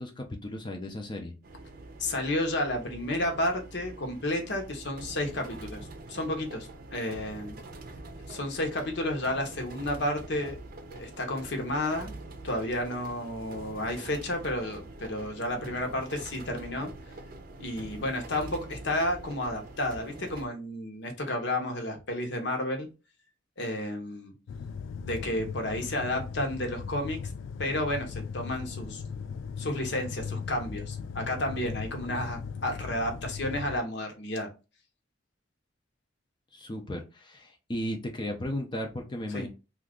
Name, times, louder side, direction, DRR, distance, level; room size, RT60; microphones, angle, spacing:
voice 1, 0.0-1.3 36.5-39.5, left 1 dB, 25° left, 3 dB, 0.5 m, -35 dB
sound 1, 1.4-20.5, right 2 dB, 50° right, 0.6 m, -45 dB
voice 2, 2.0-7.6 8.3-10.6 10.9-12.1 12.4-16.9 17.6-22.9 23.6-24.3 25.0-27.2 27.6-29.0 29.6-34.5 39.3-39.5, left 1 dB, 65° left, 4 dB, 0.8 m, -31 dB
sound 2, 24.5-33.8, left 5 dB, 90° left, 0.3 m, -38 dB
2.8 x 2.4 x 3.5 m, 0.29 s
head